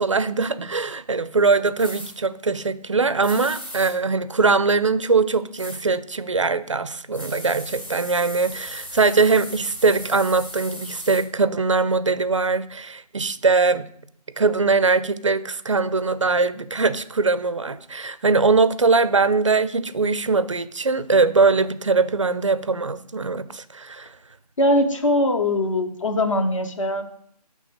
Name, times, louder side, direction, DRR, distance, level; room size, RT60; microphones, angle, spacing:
voice 1, 0.0-13.9 14.4-24.1, right 4 dB, 50° right, 14 dB, 0.4 m, -21 dB
sound 1, 1.8-2.1 3.2-3.9 5.6-5.8 7.1-11.2, equal, 15° left, 0.8 m, -37 dB
voice 2, 24.6-27.1, left 1 dB, 50° left, 6 dB, 1.0 m, -21 dB
6.6 x 3.2 x 5.2 m, 0.65 s
figure-of-eight pair, 170°, 20 cm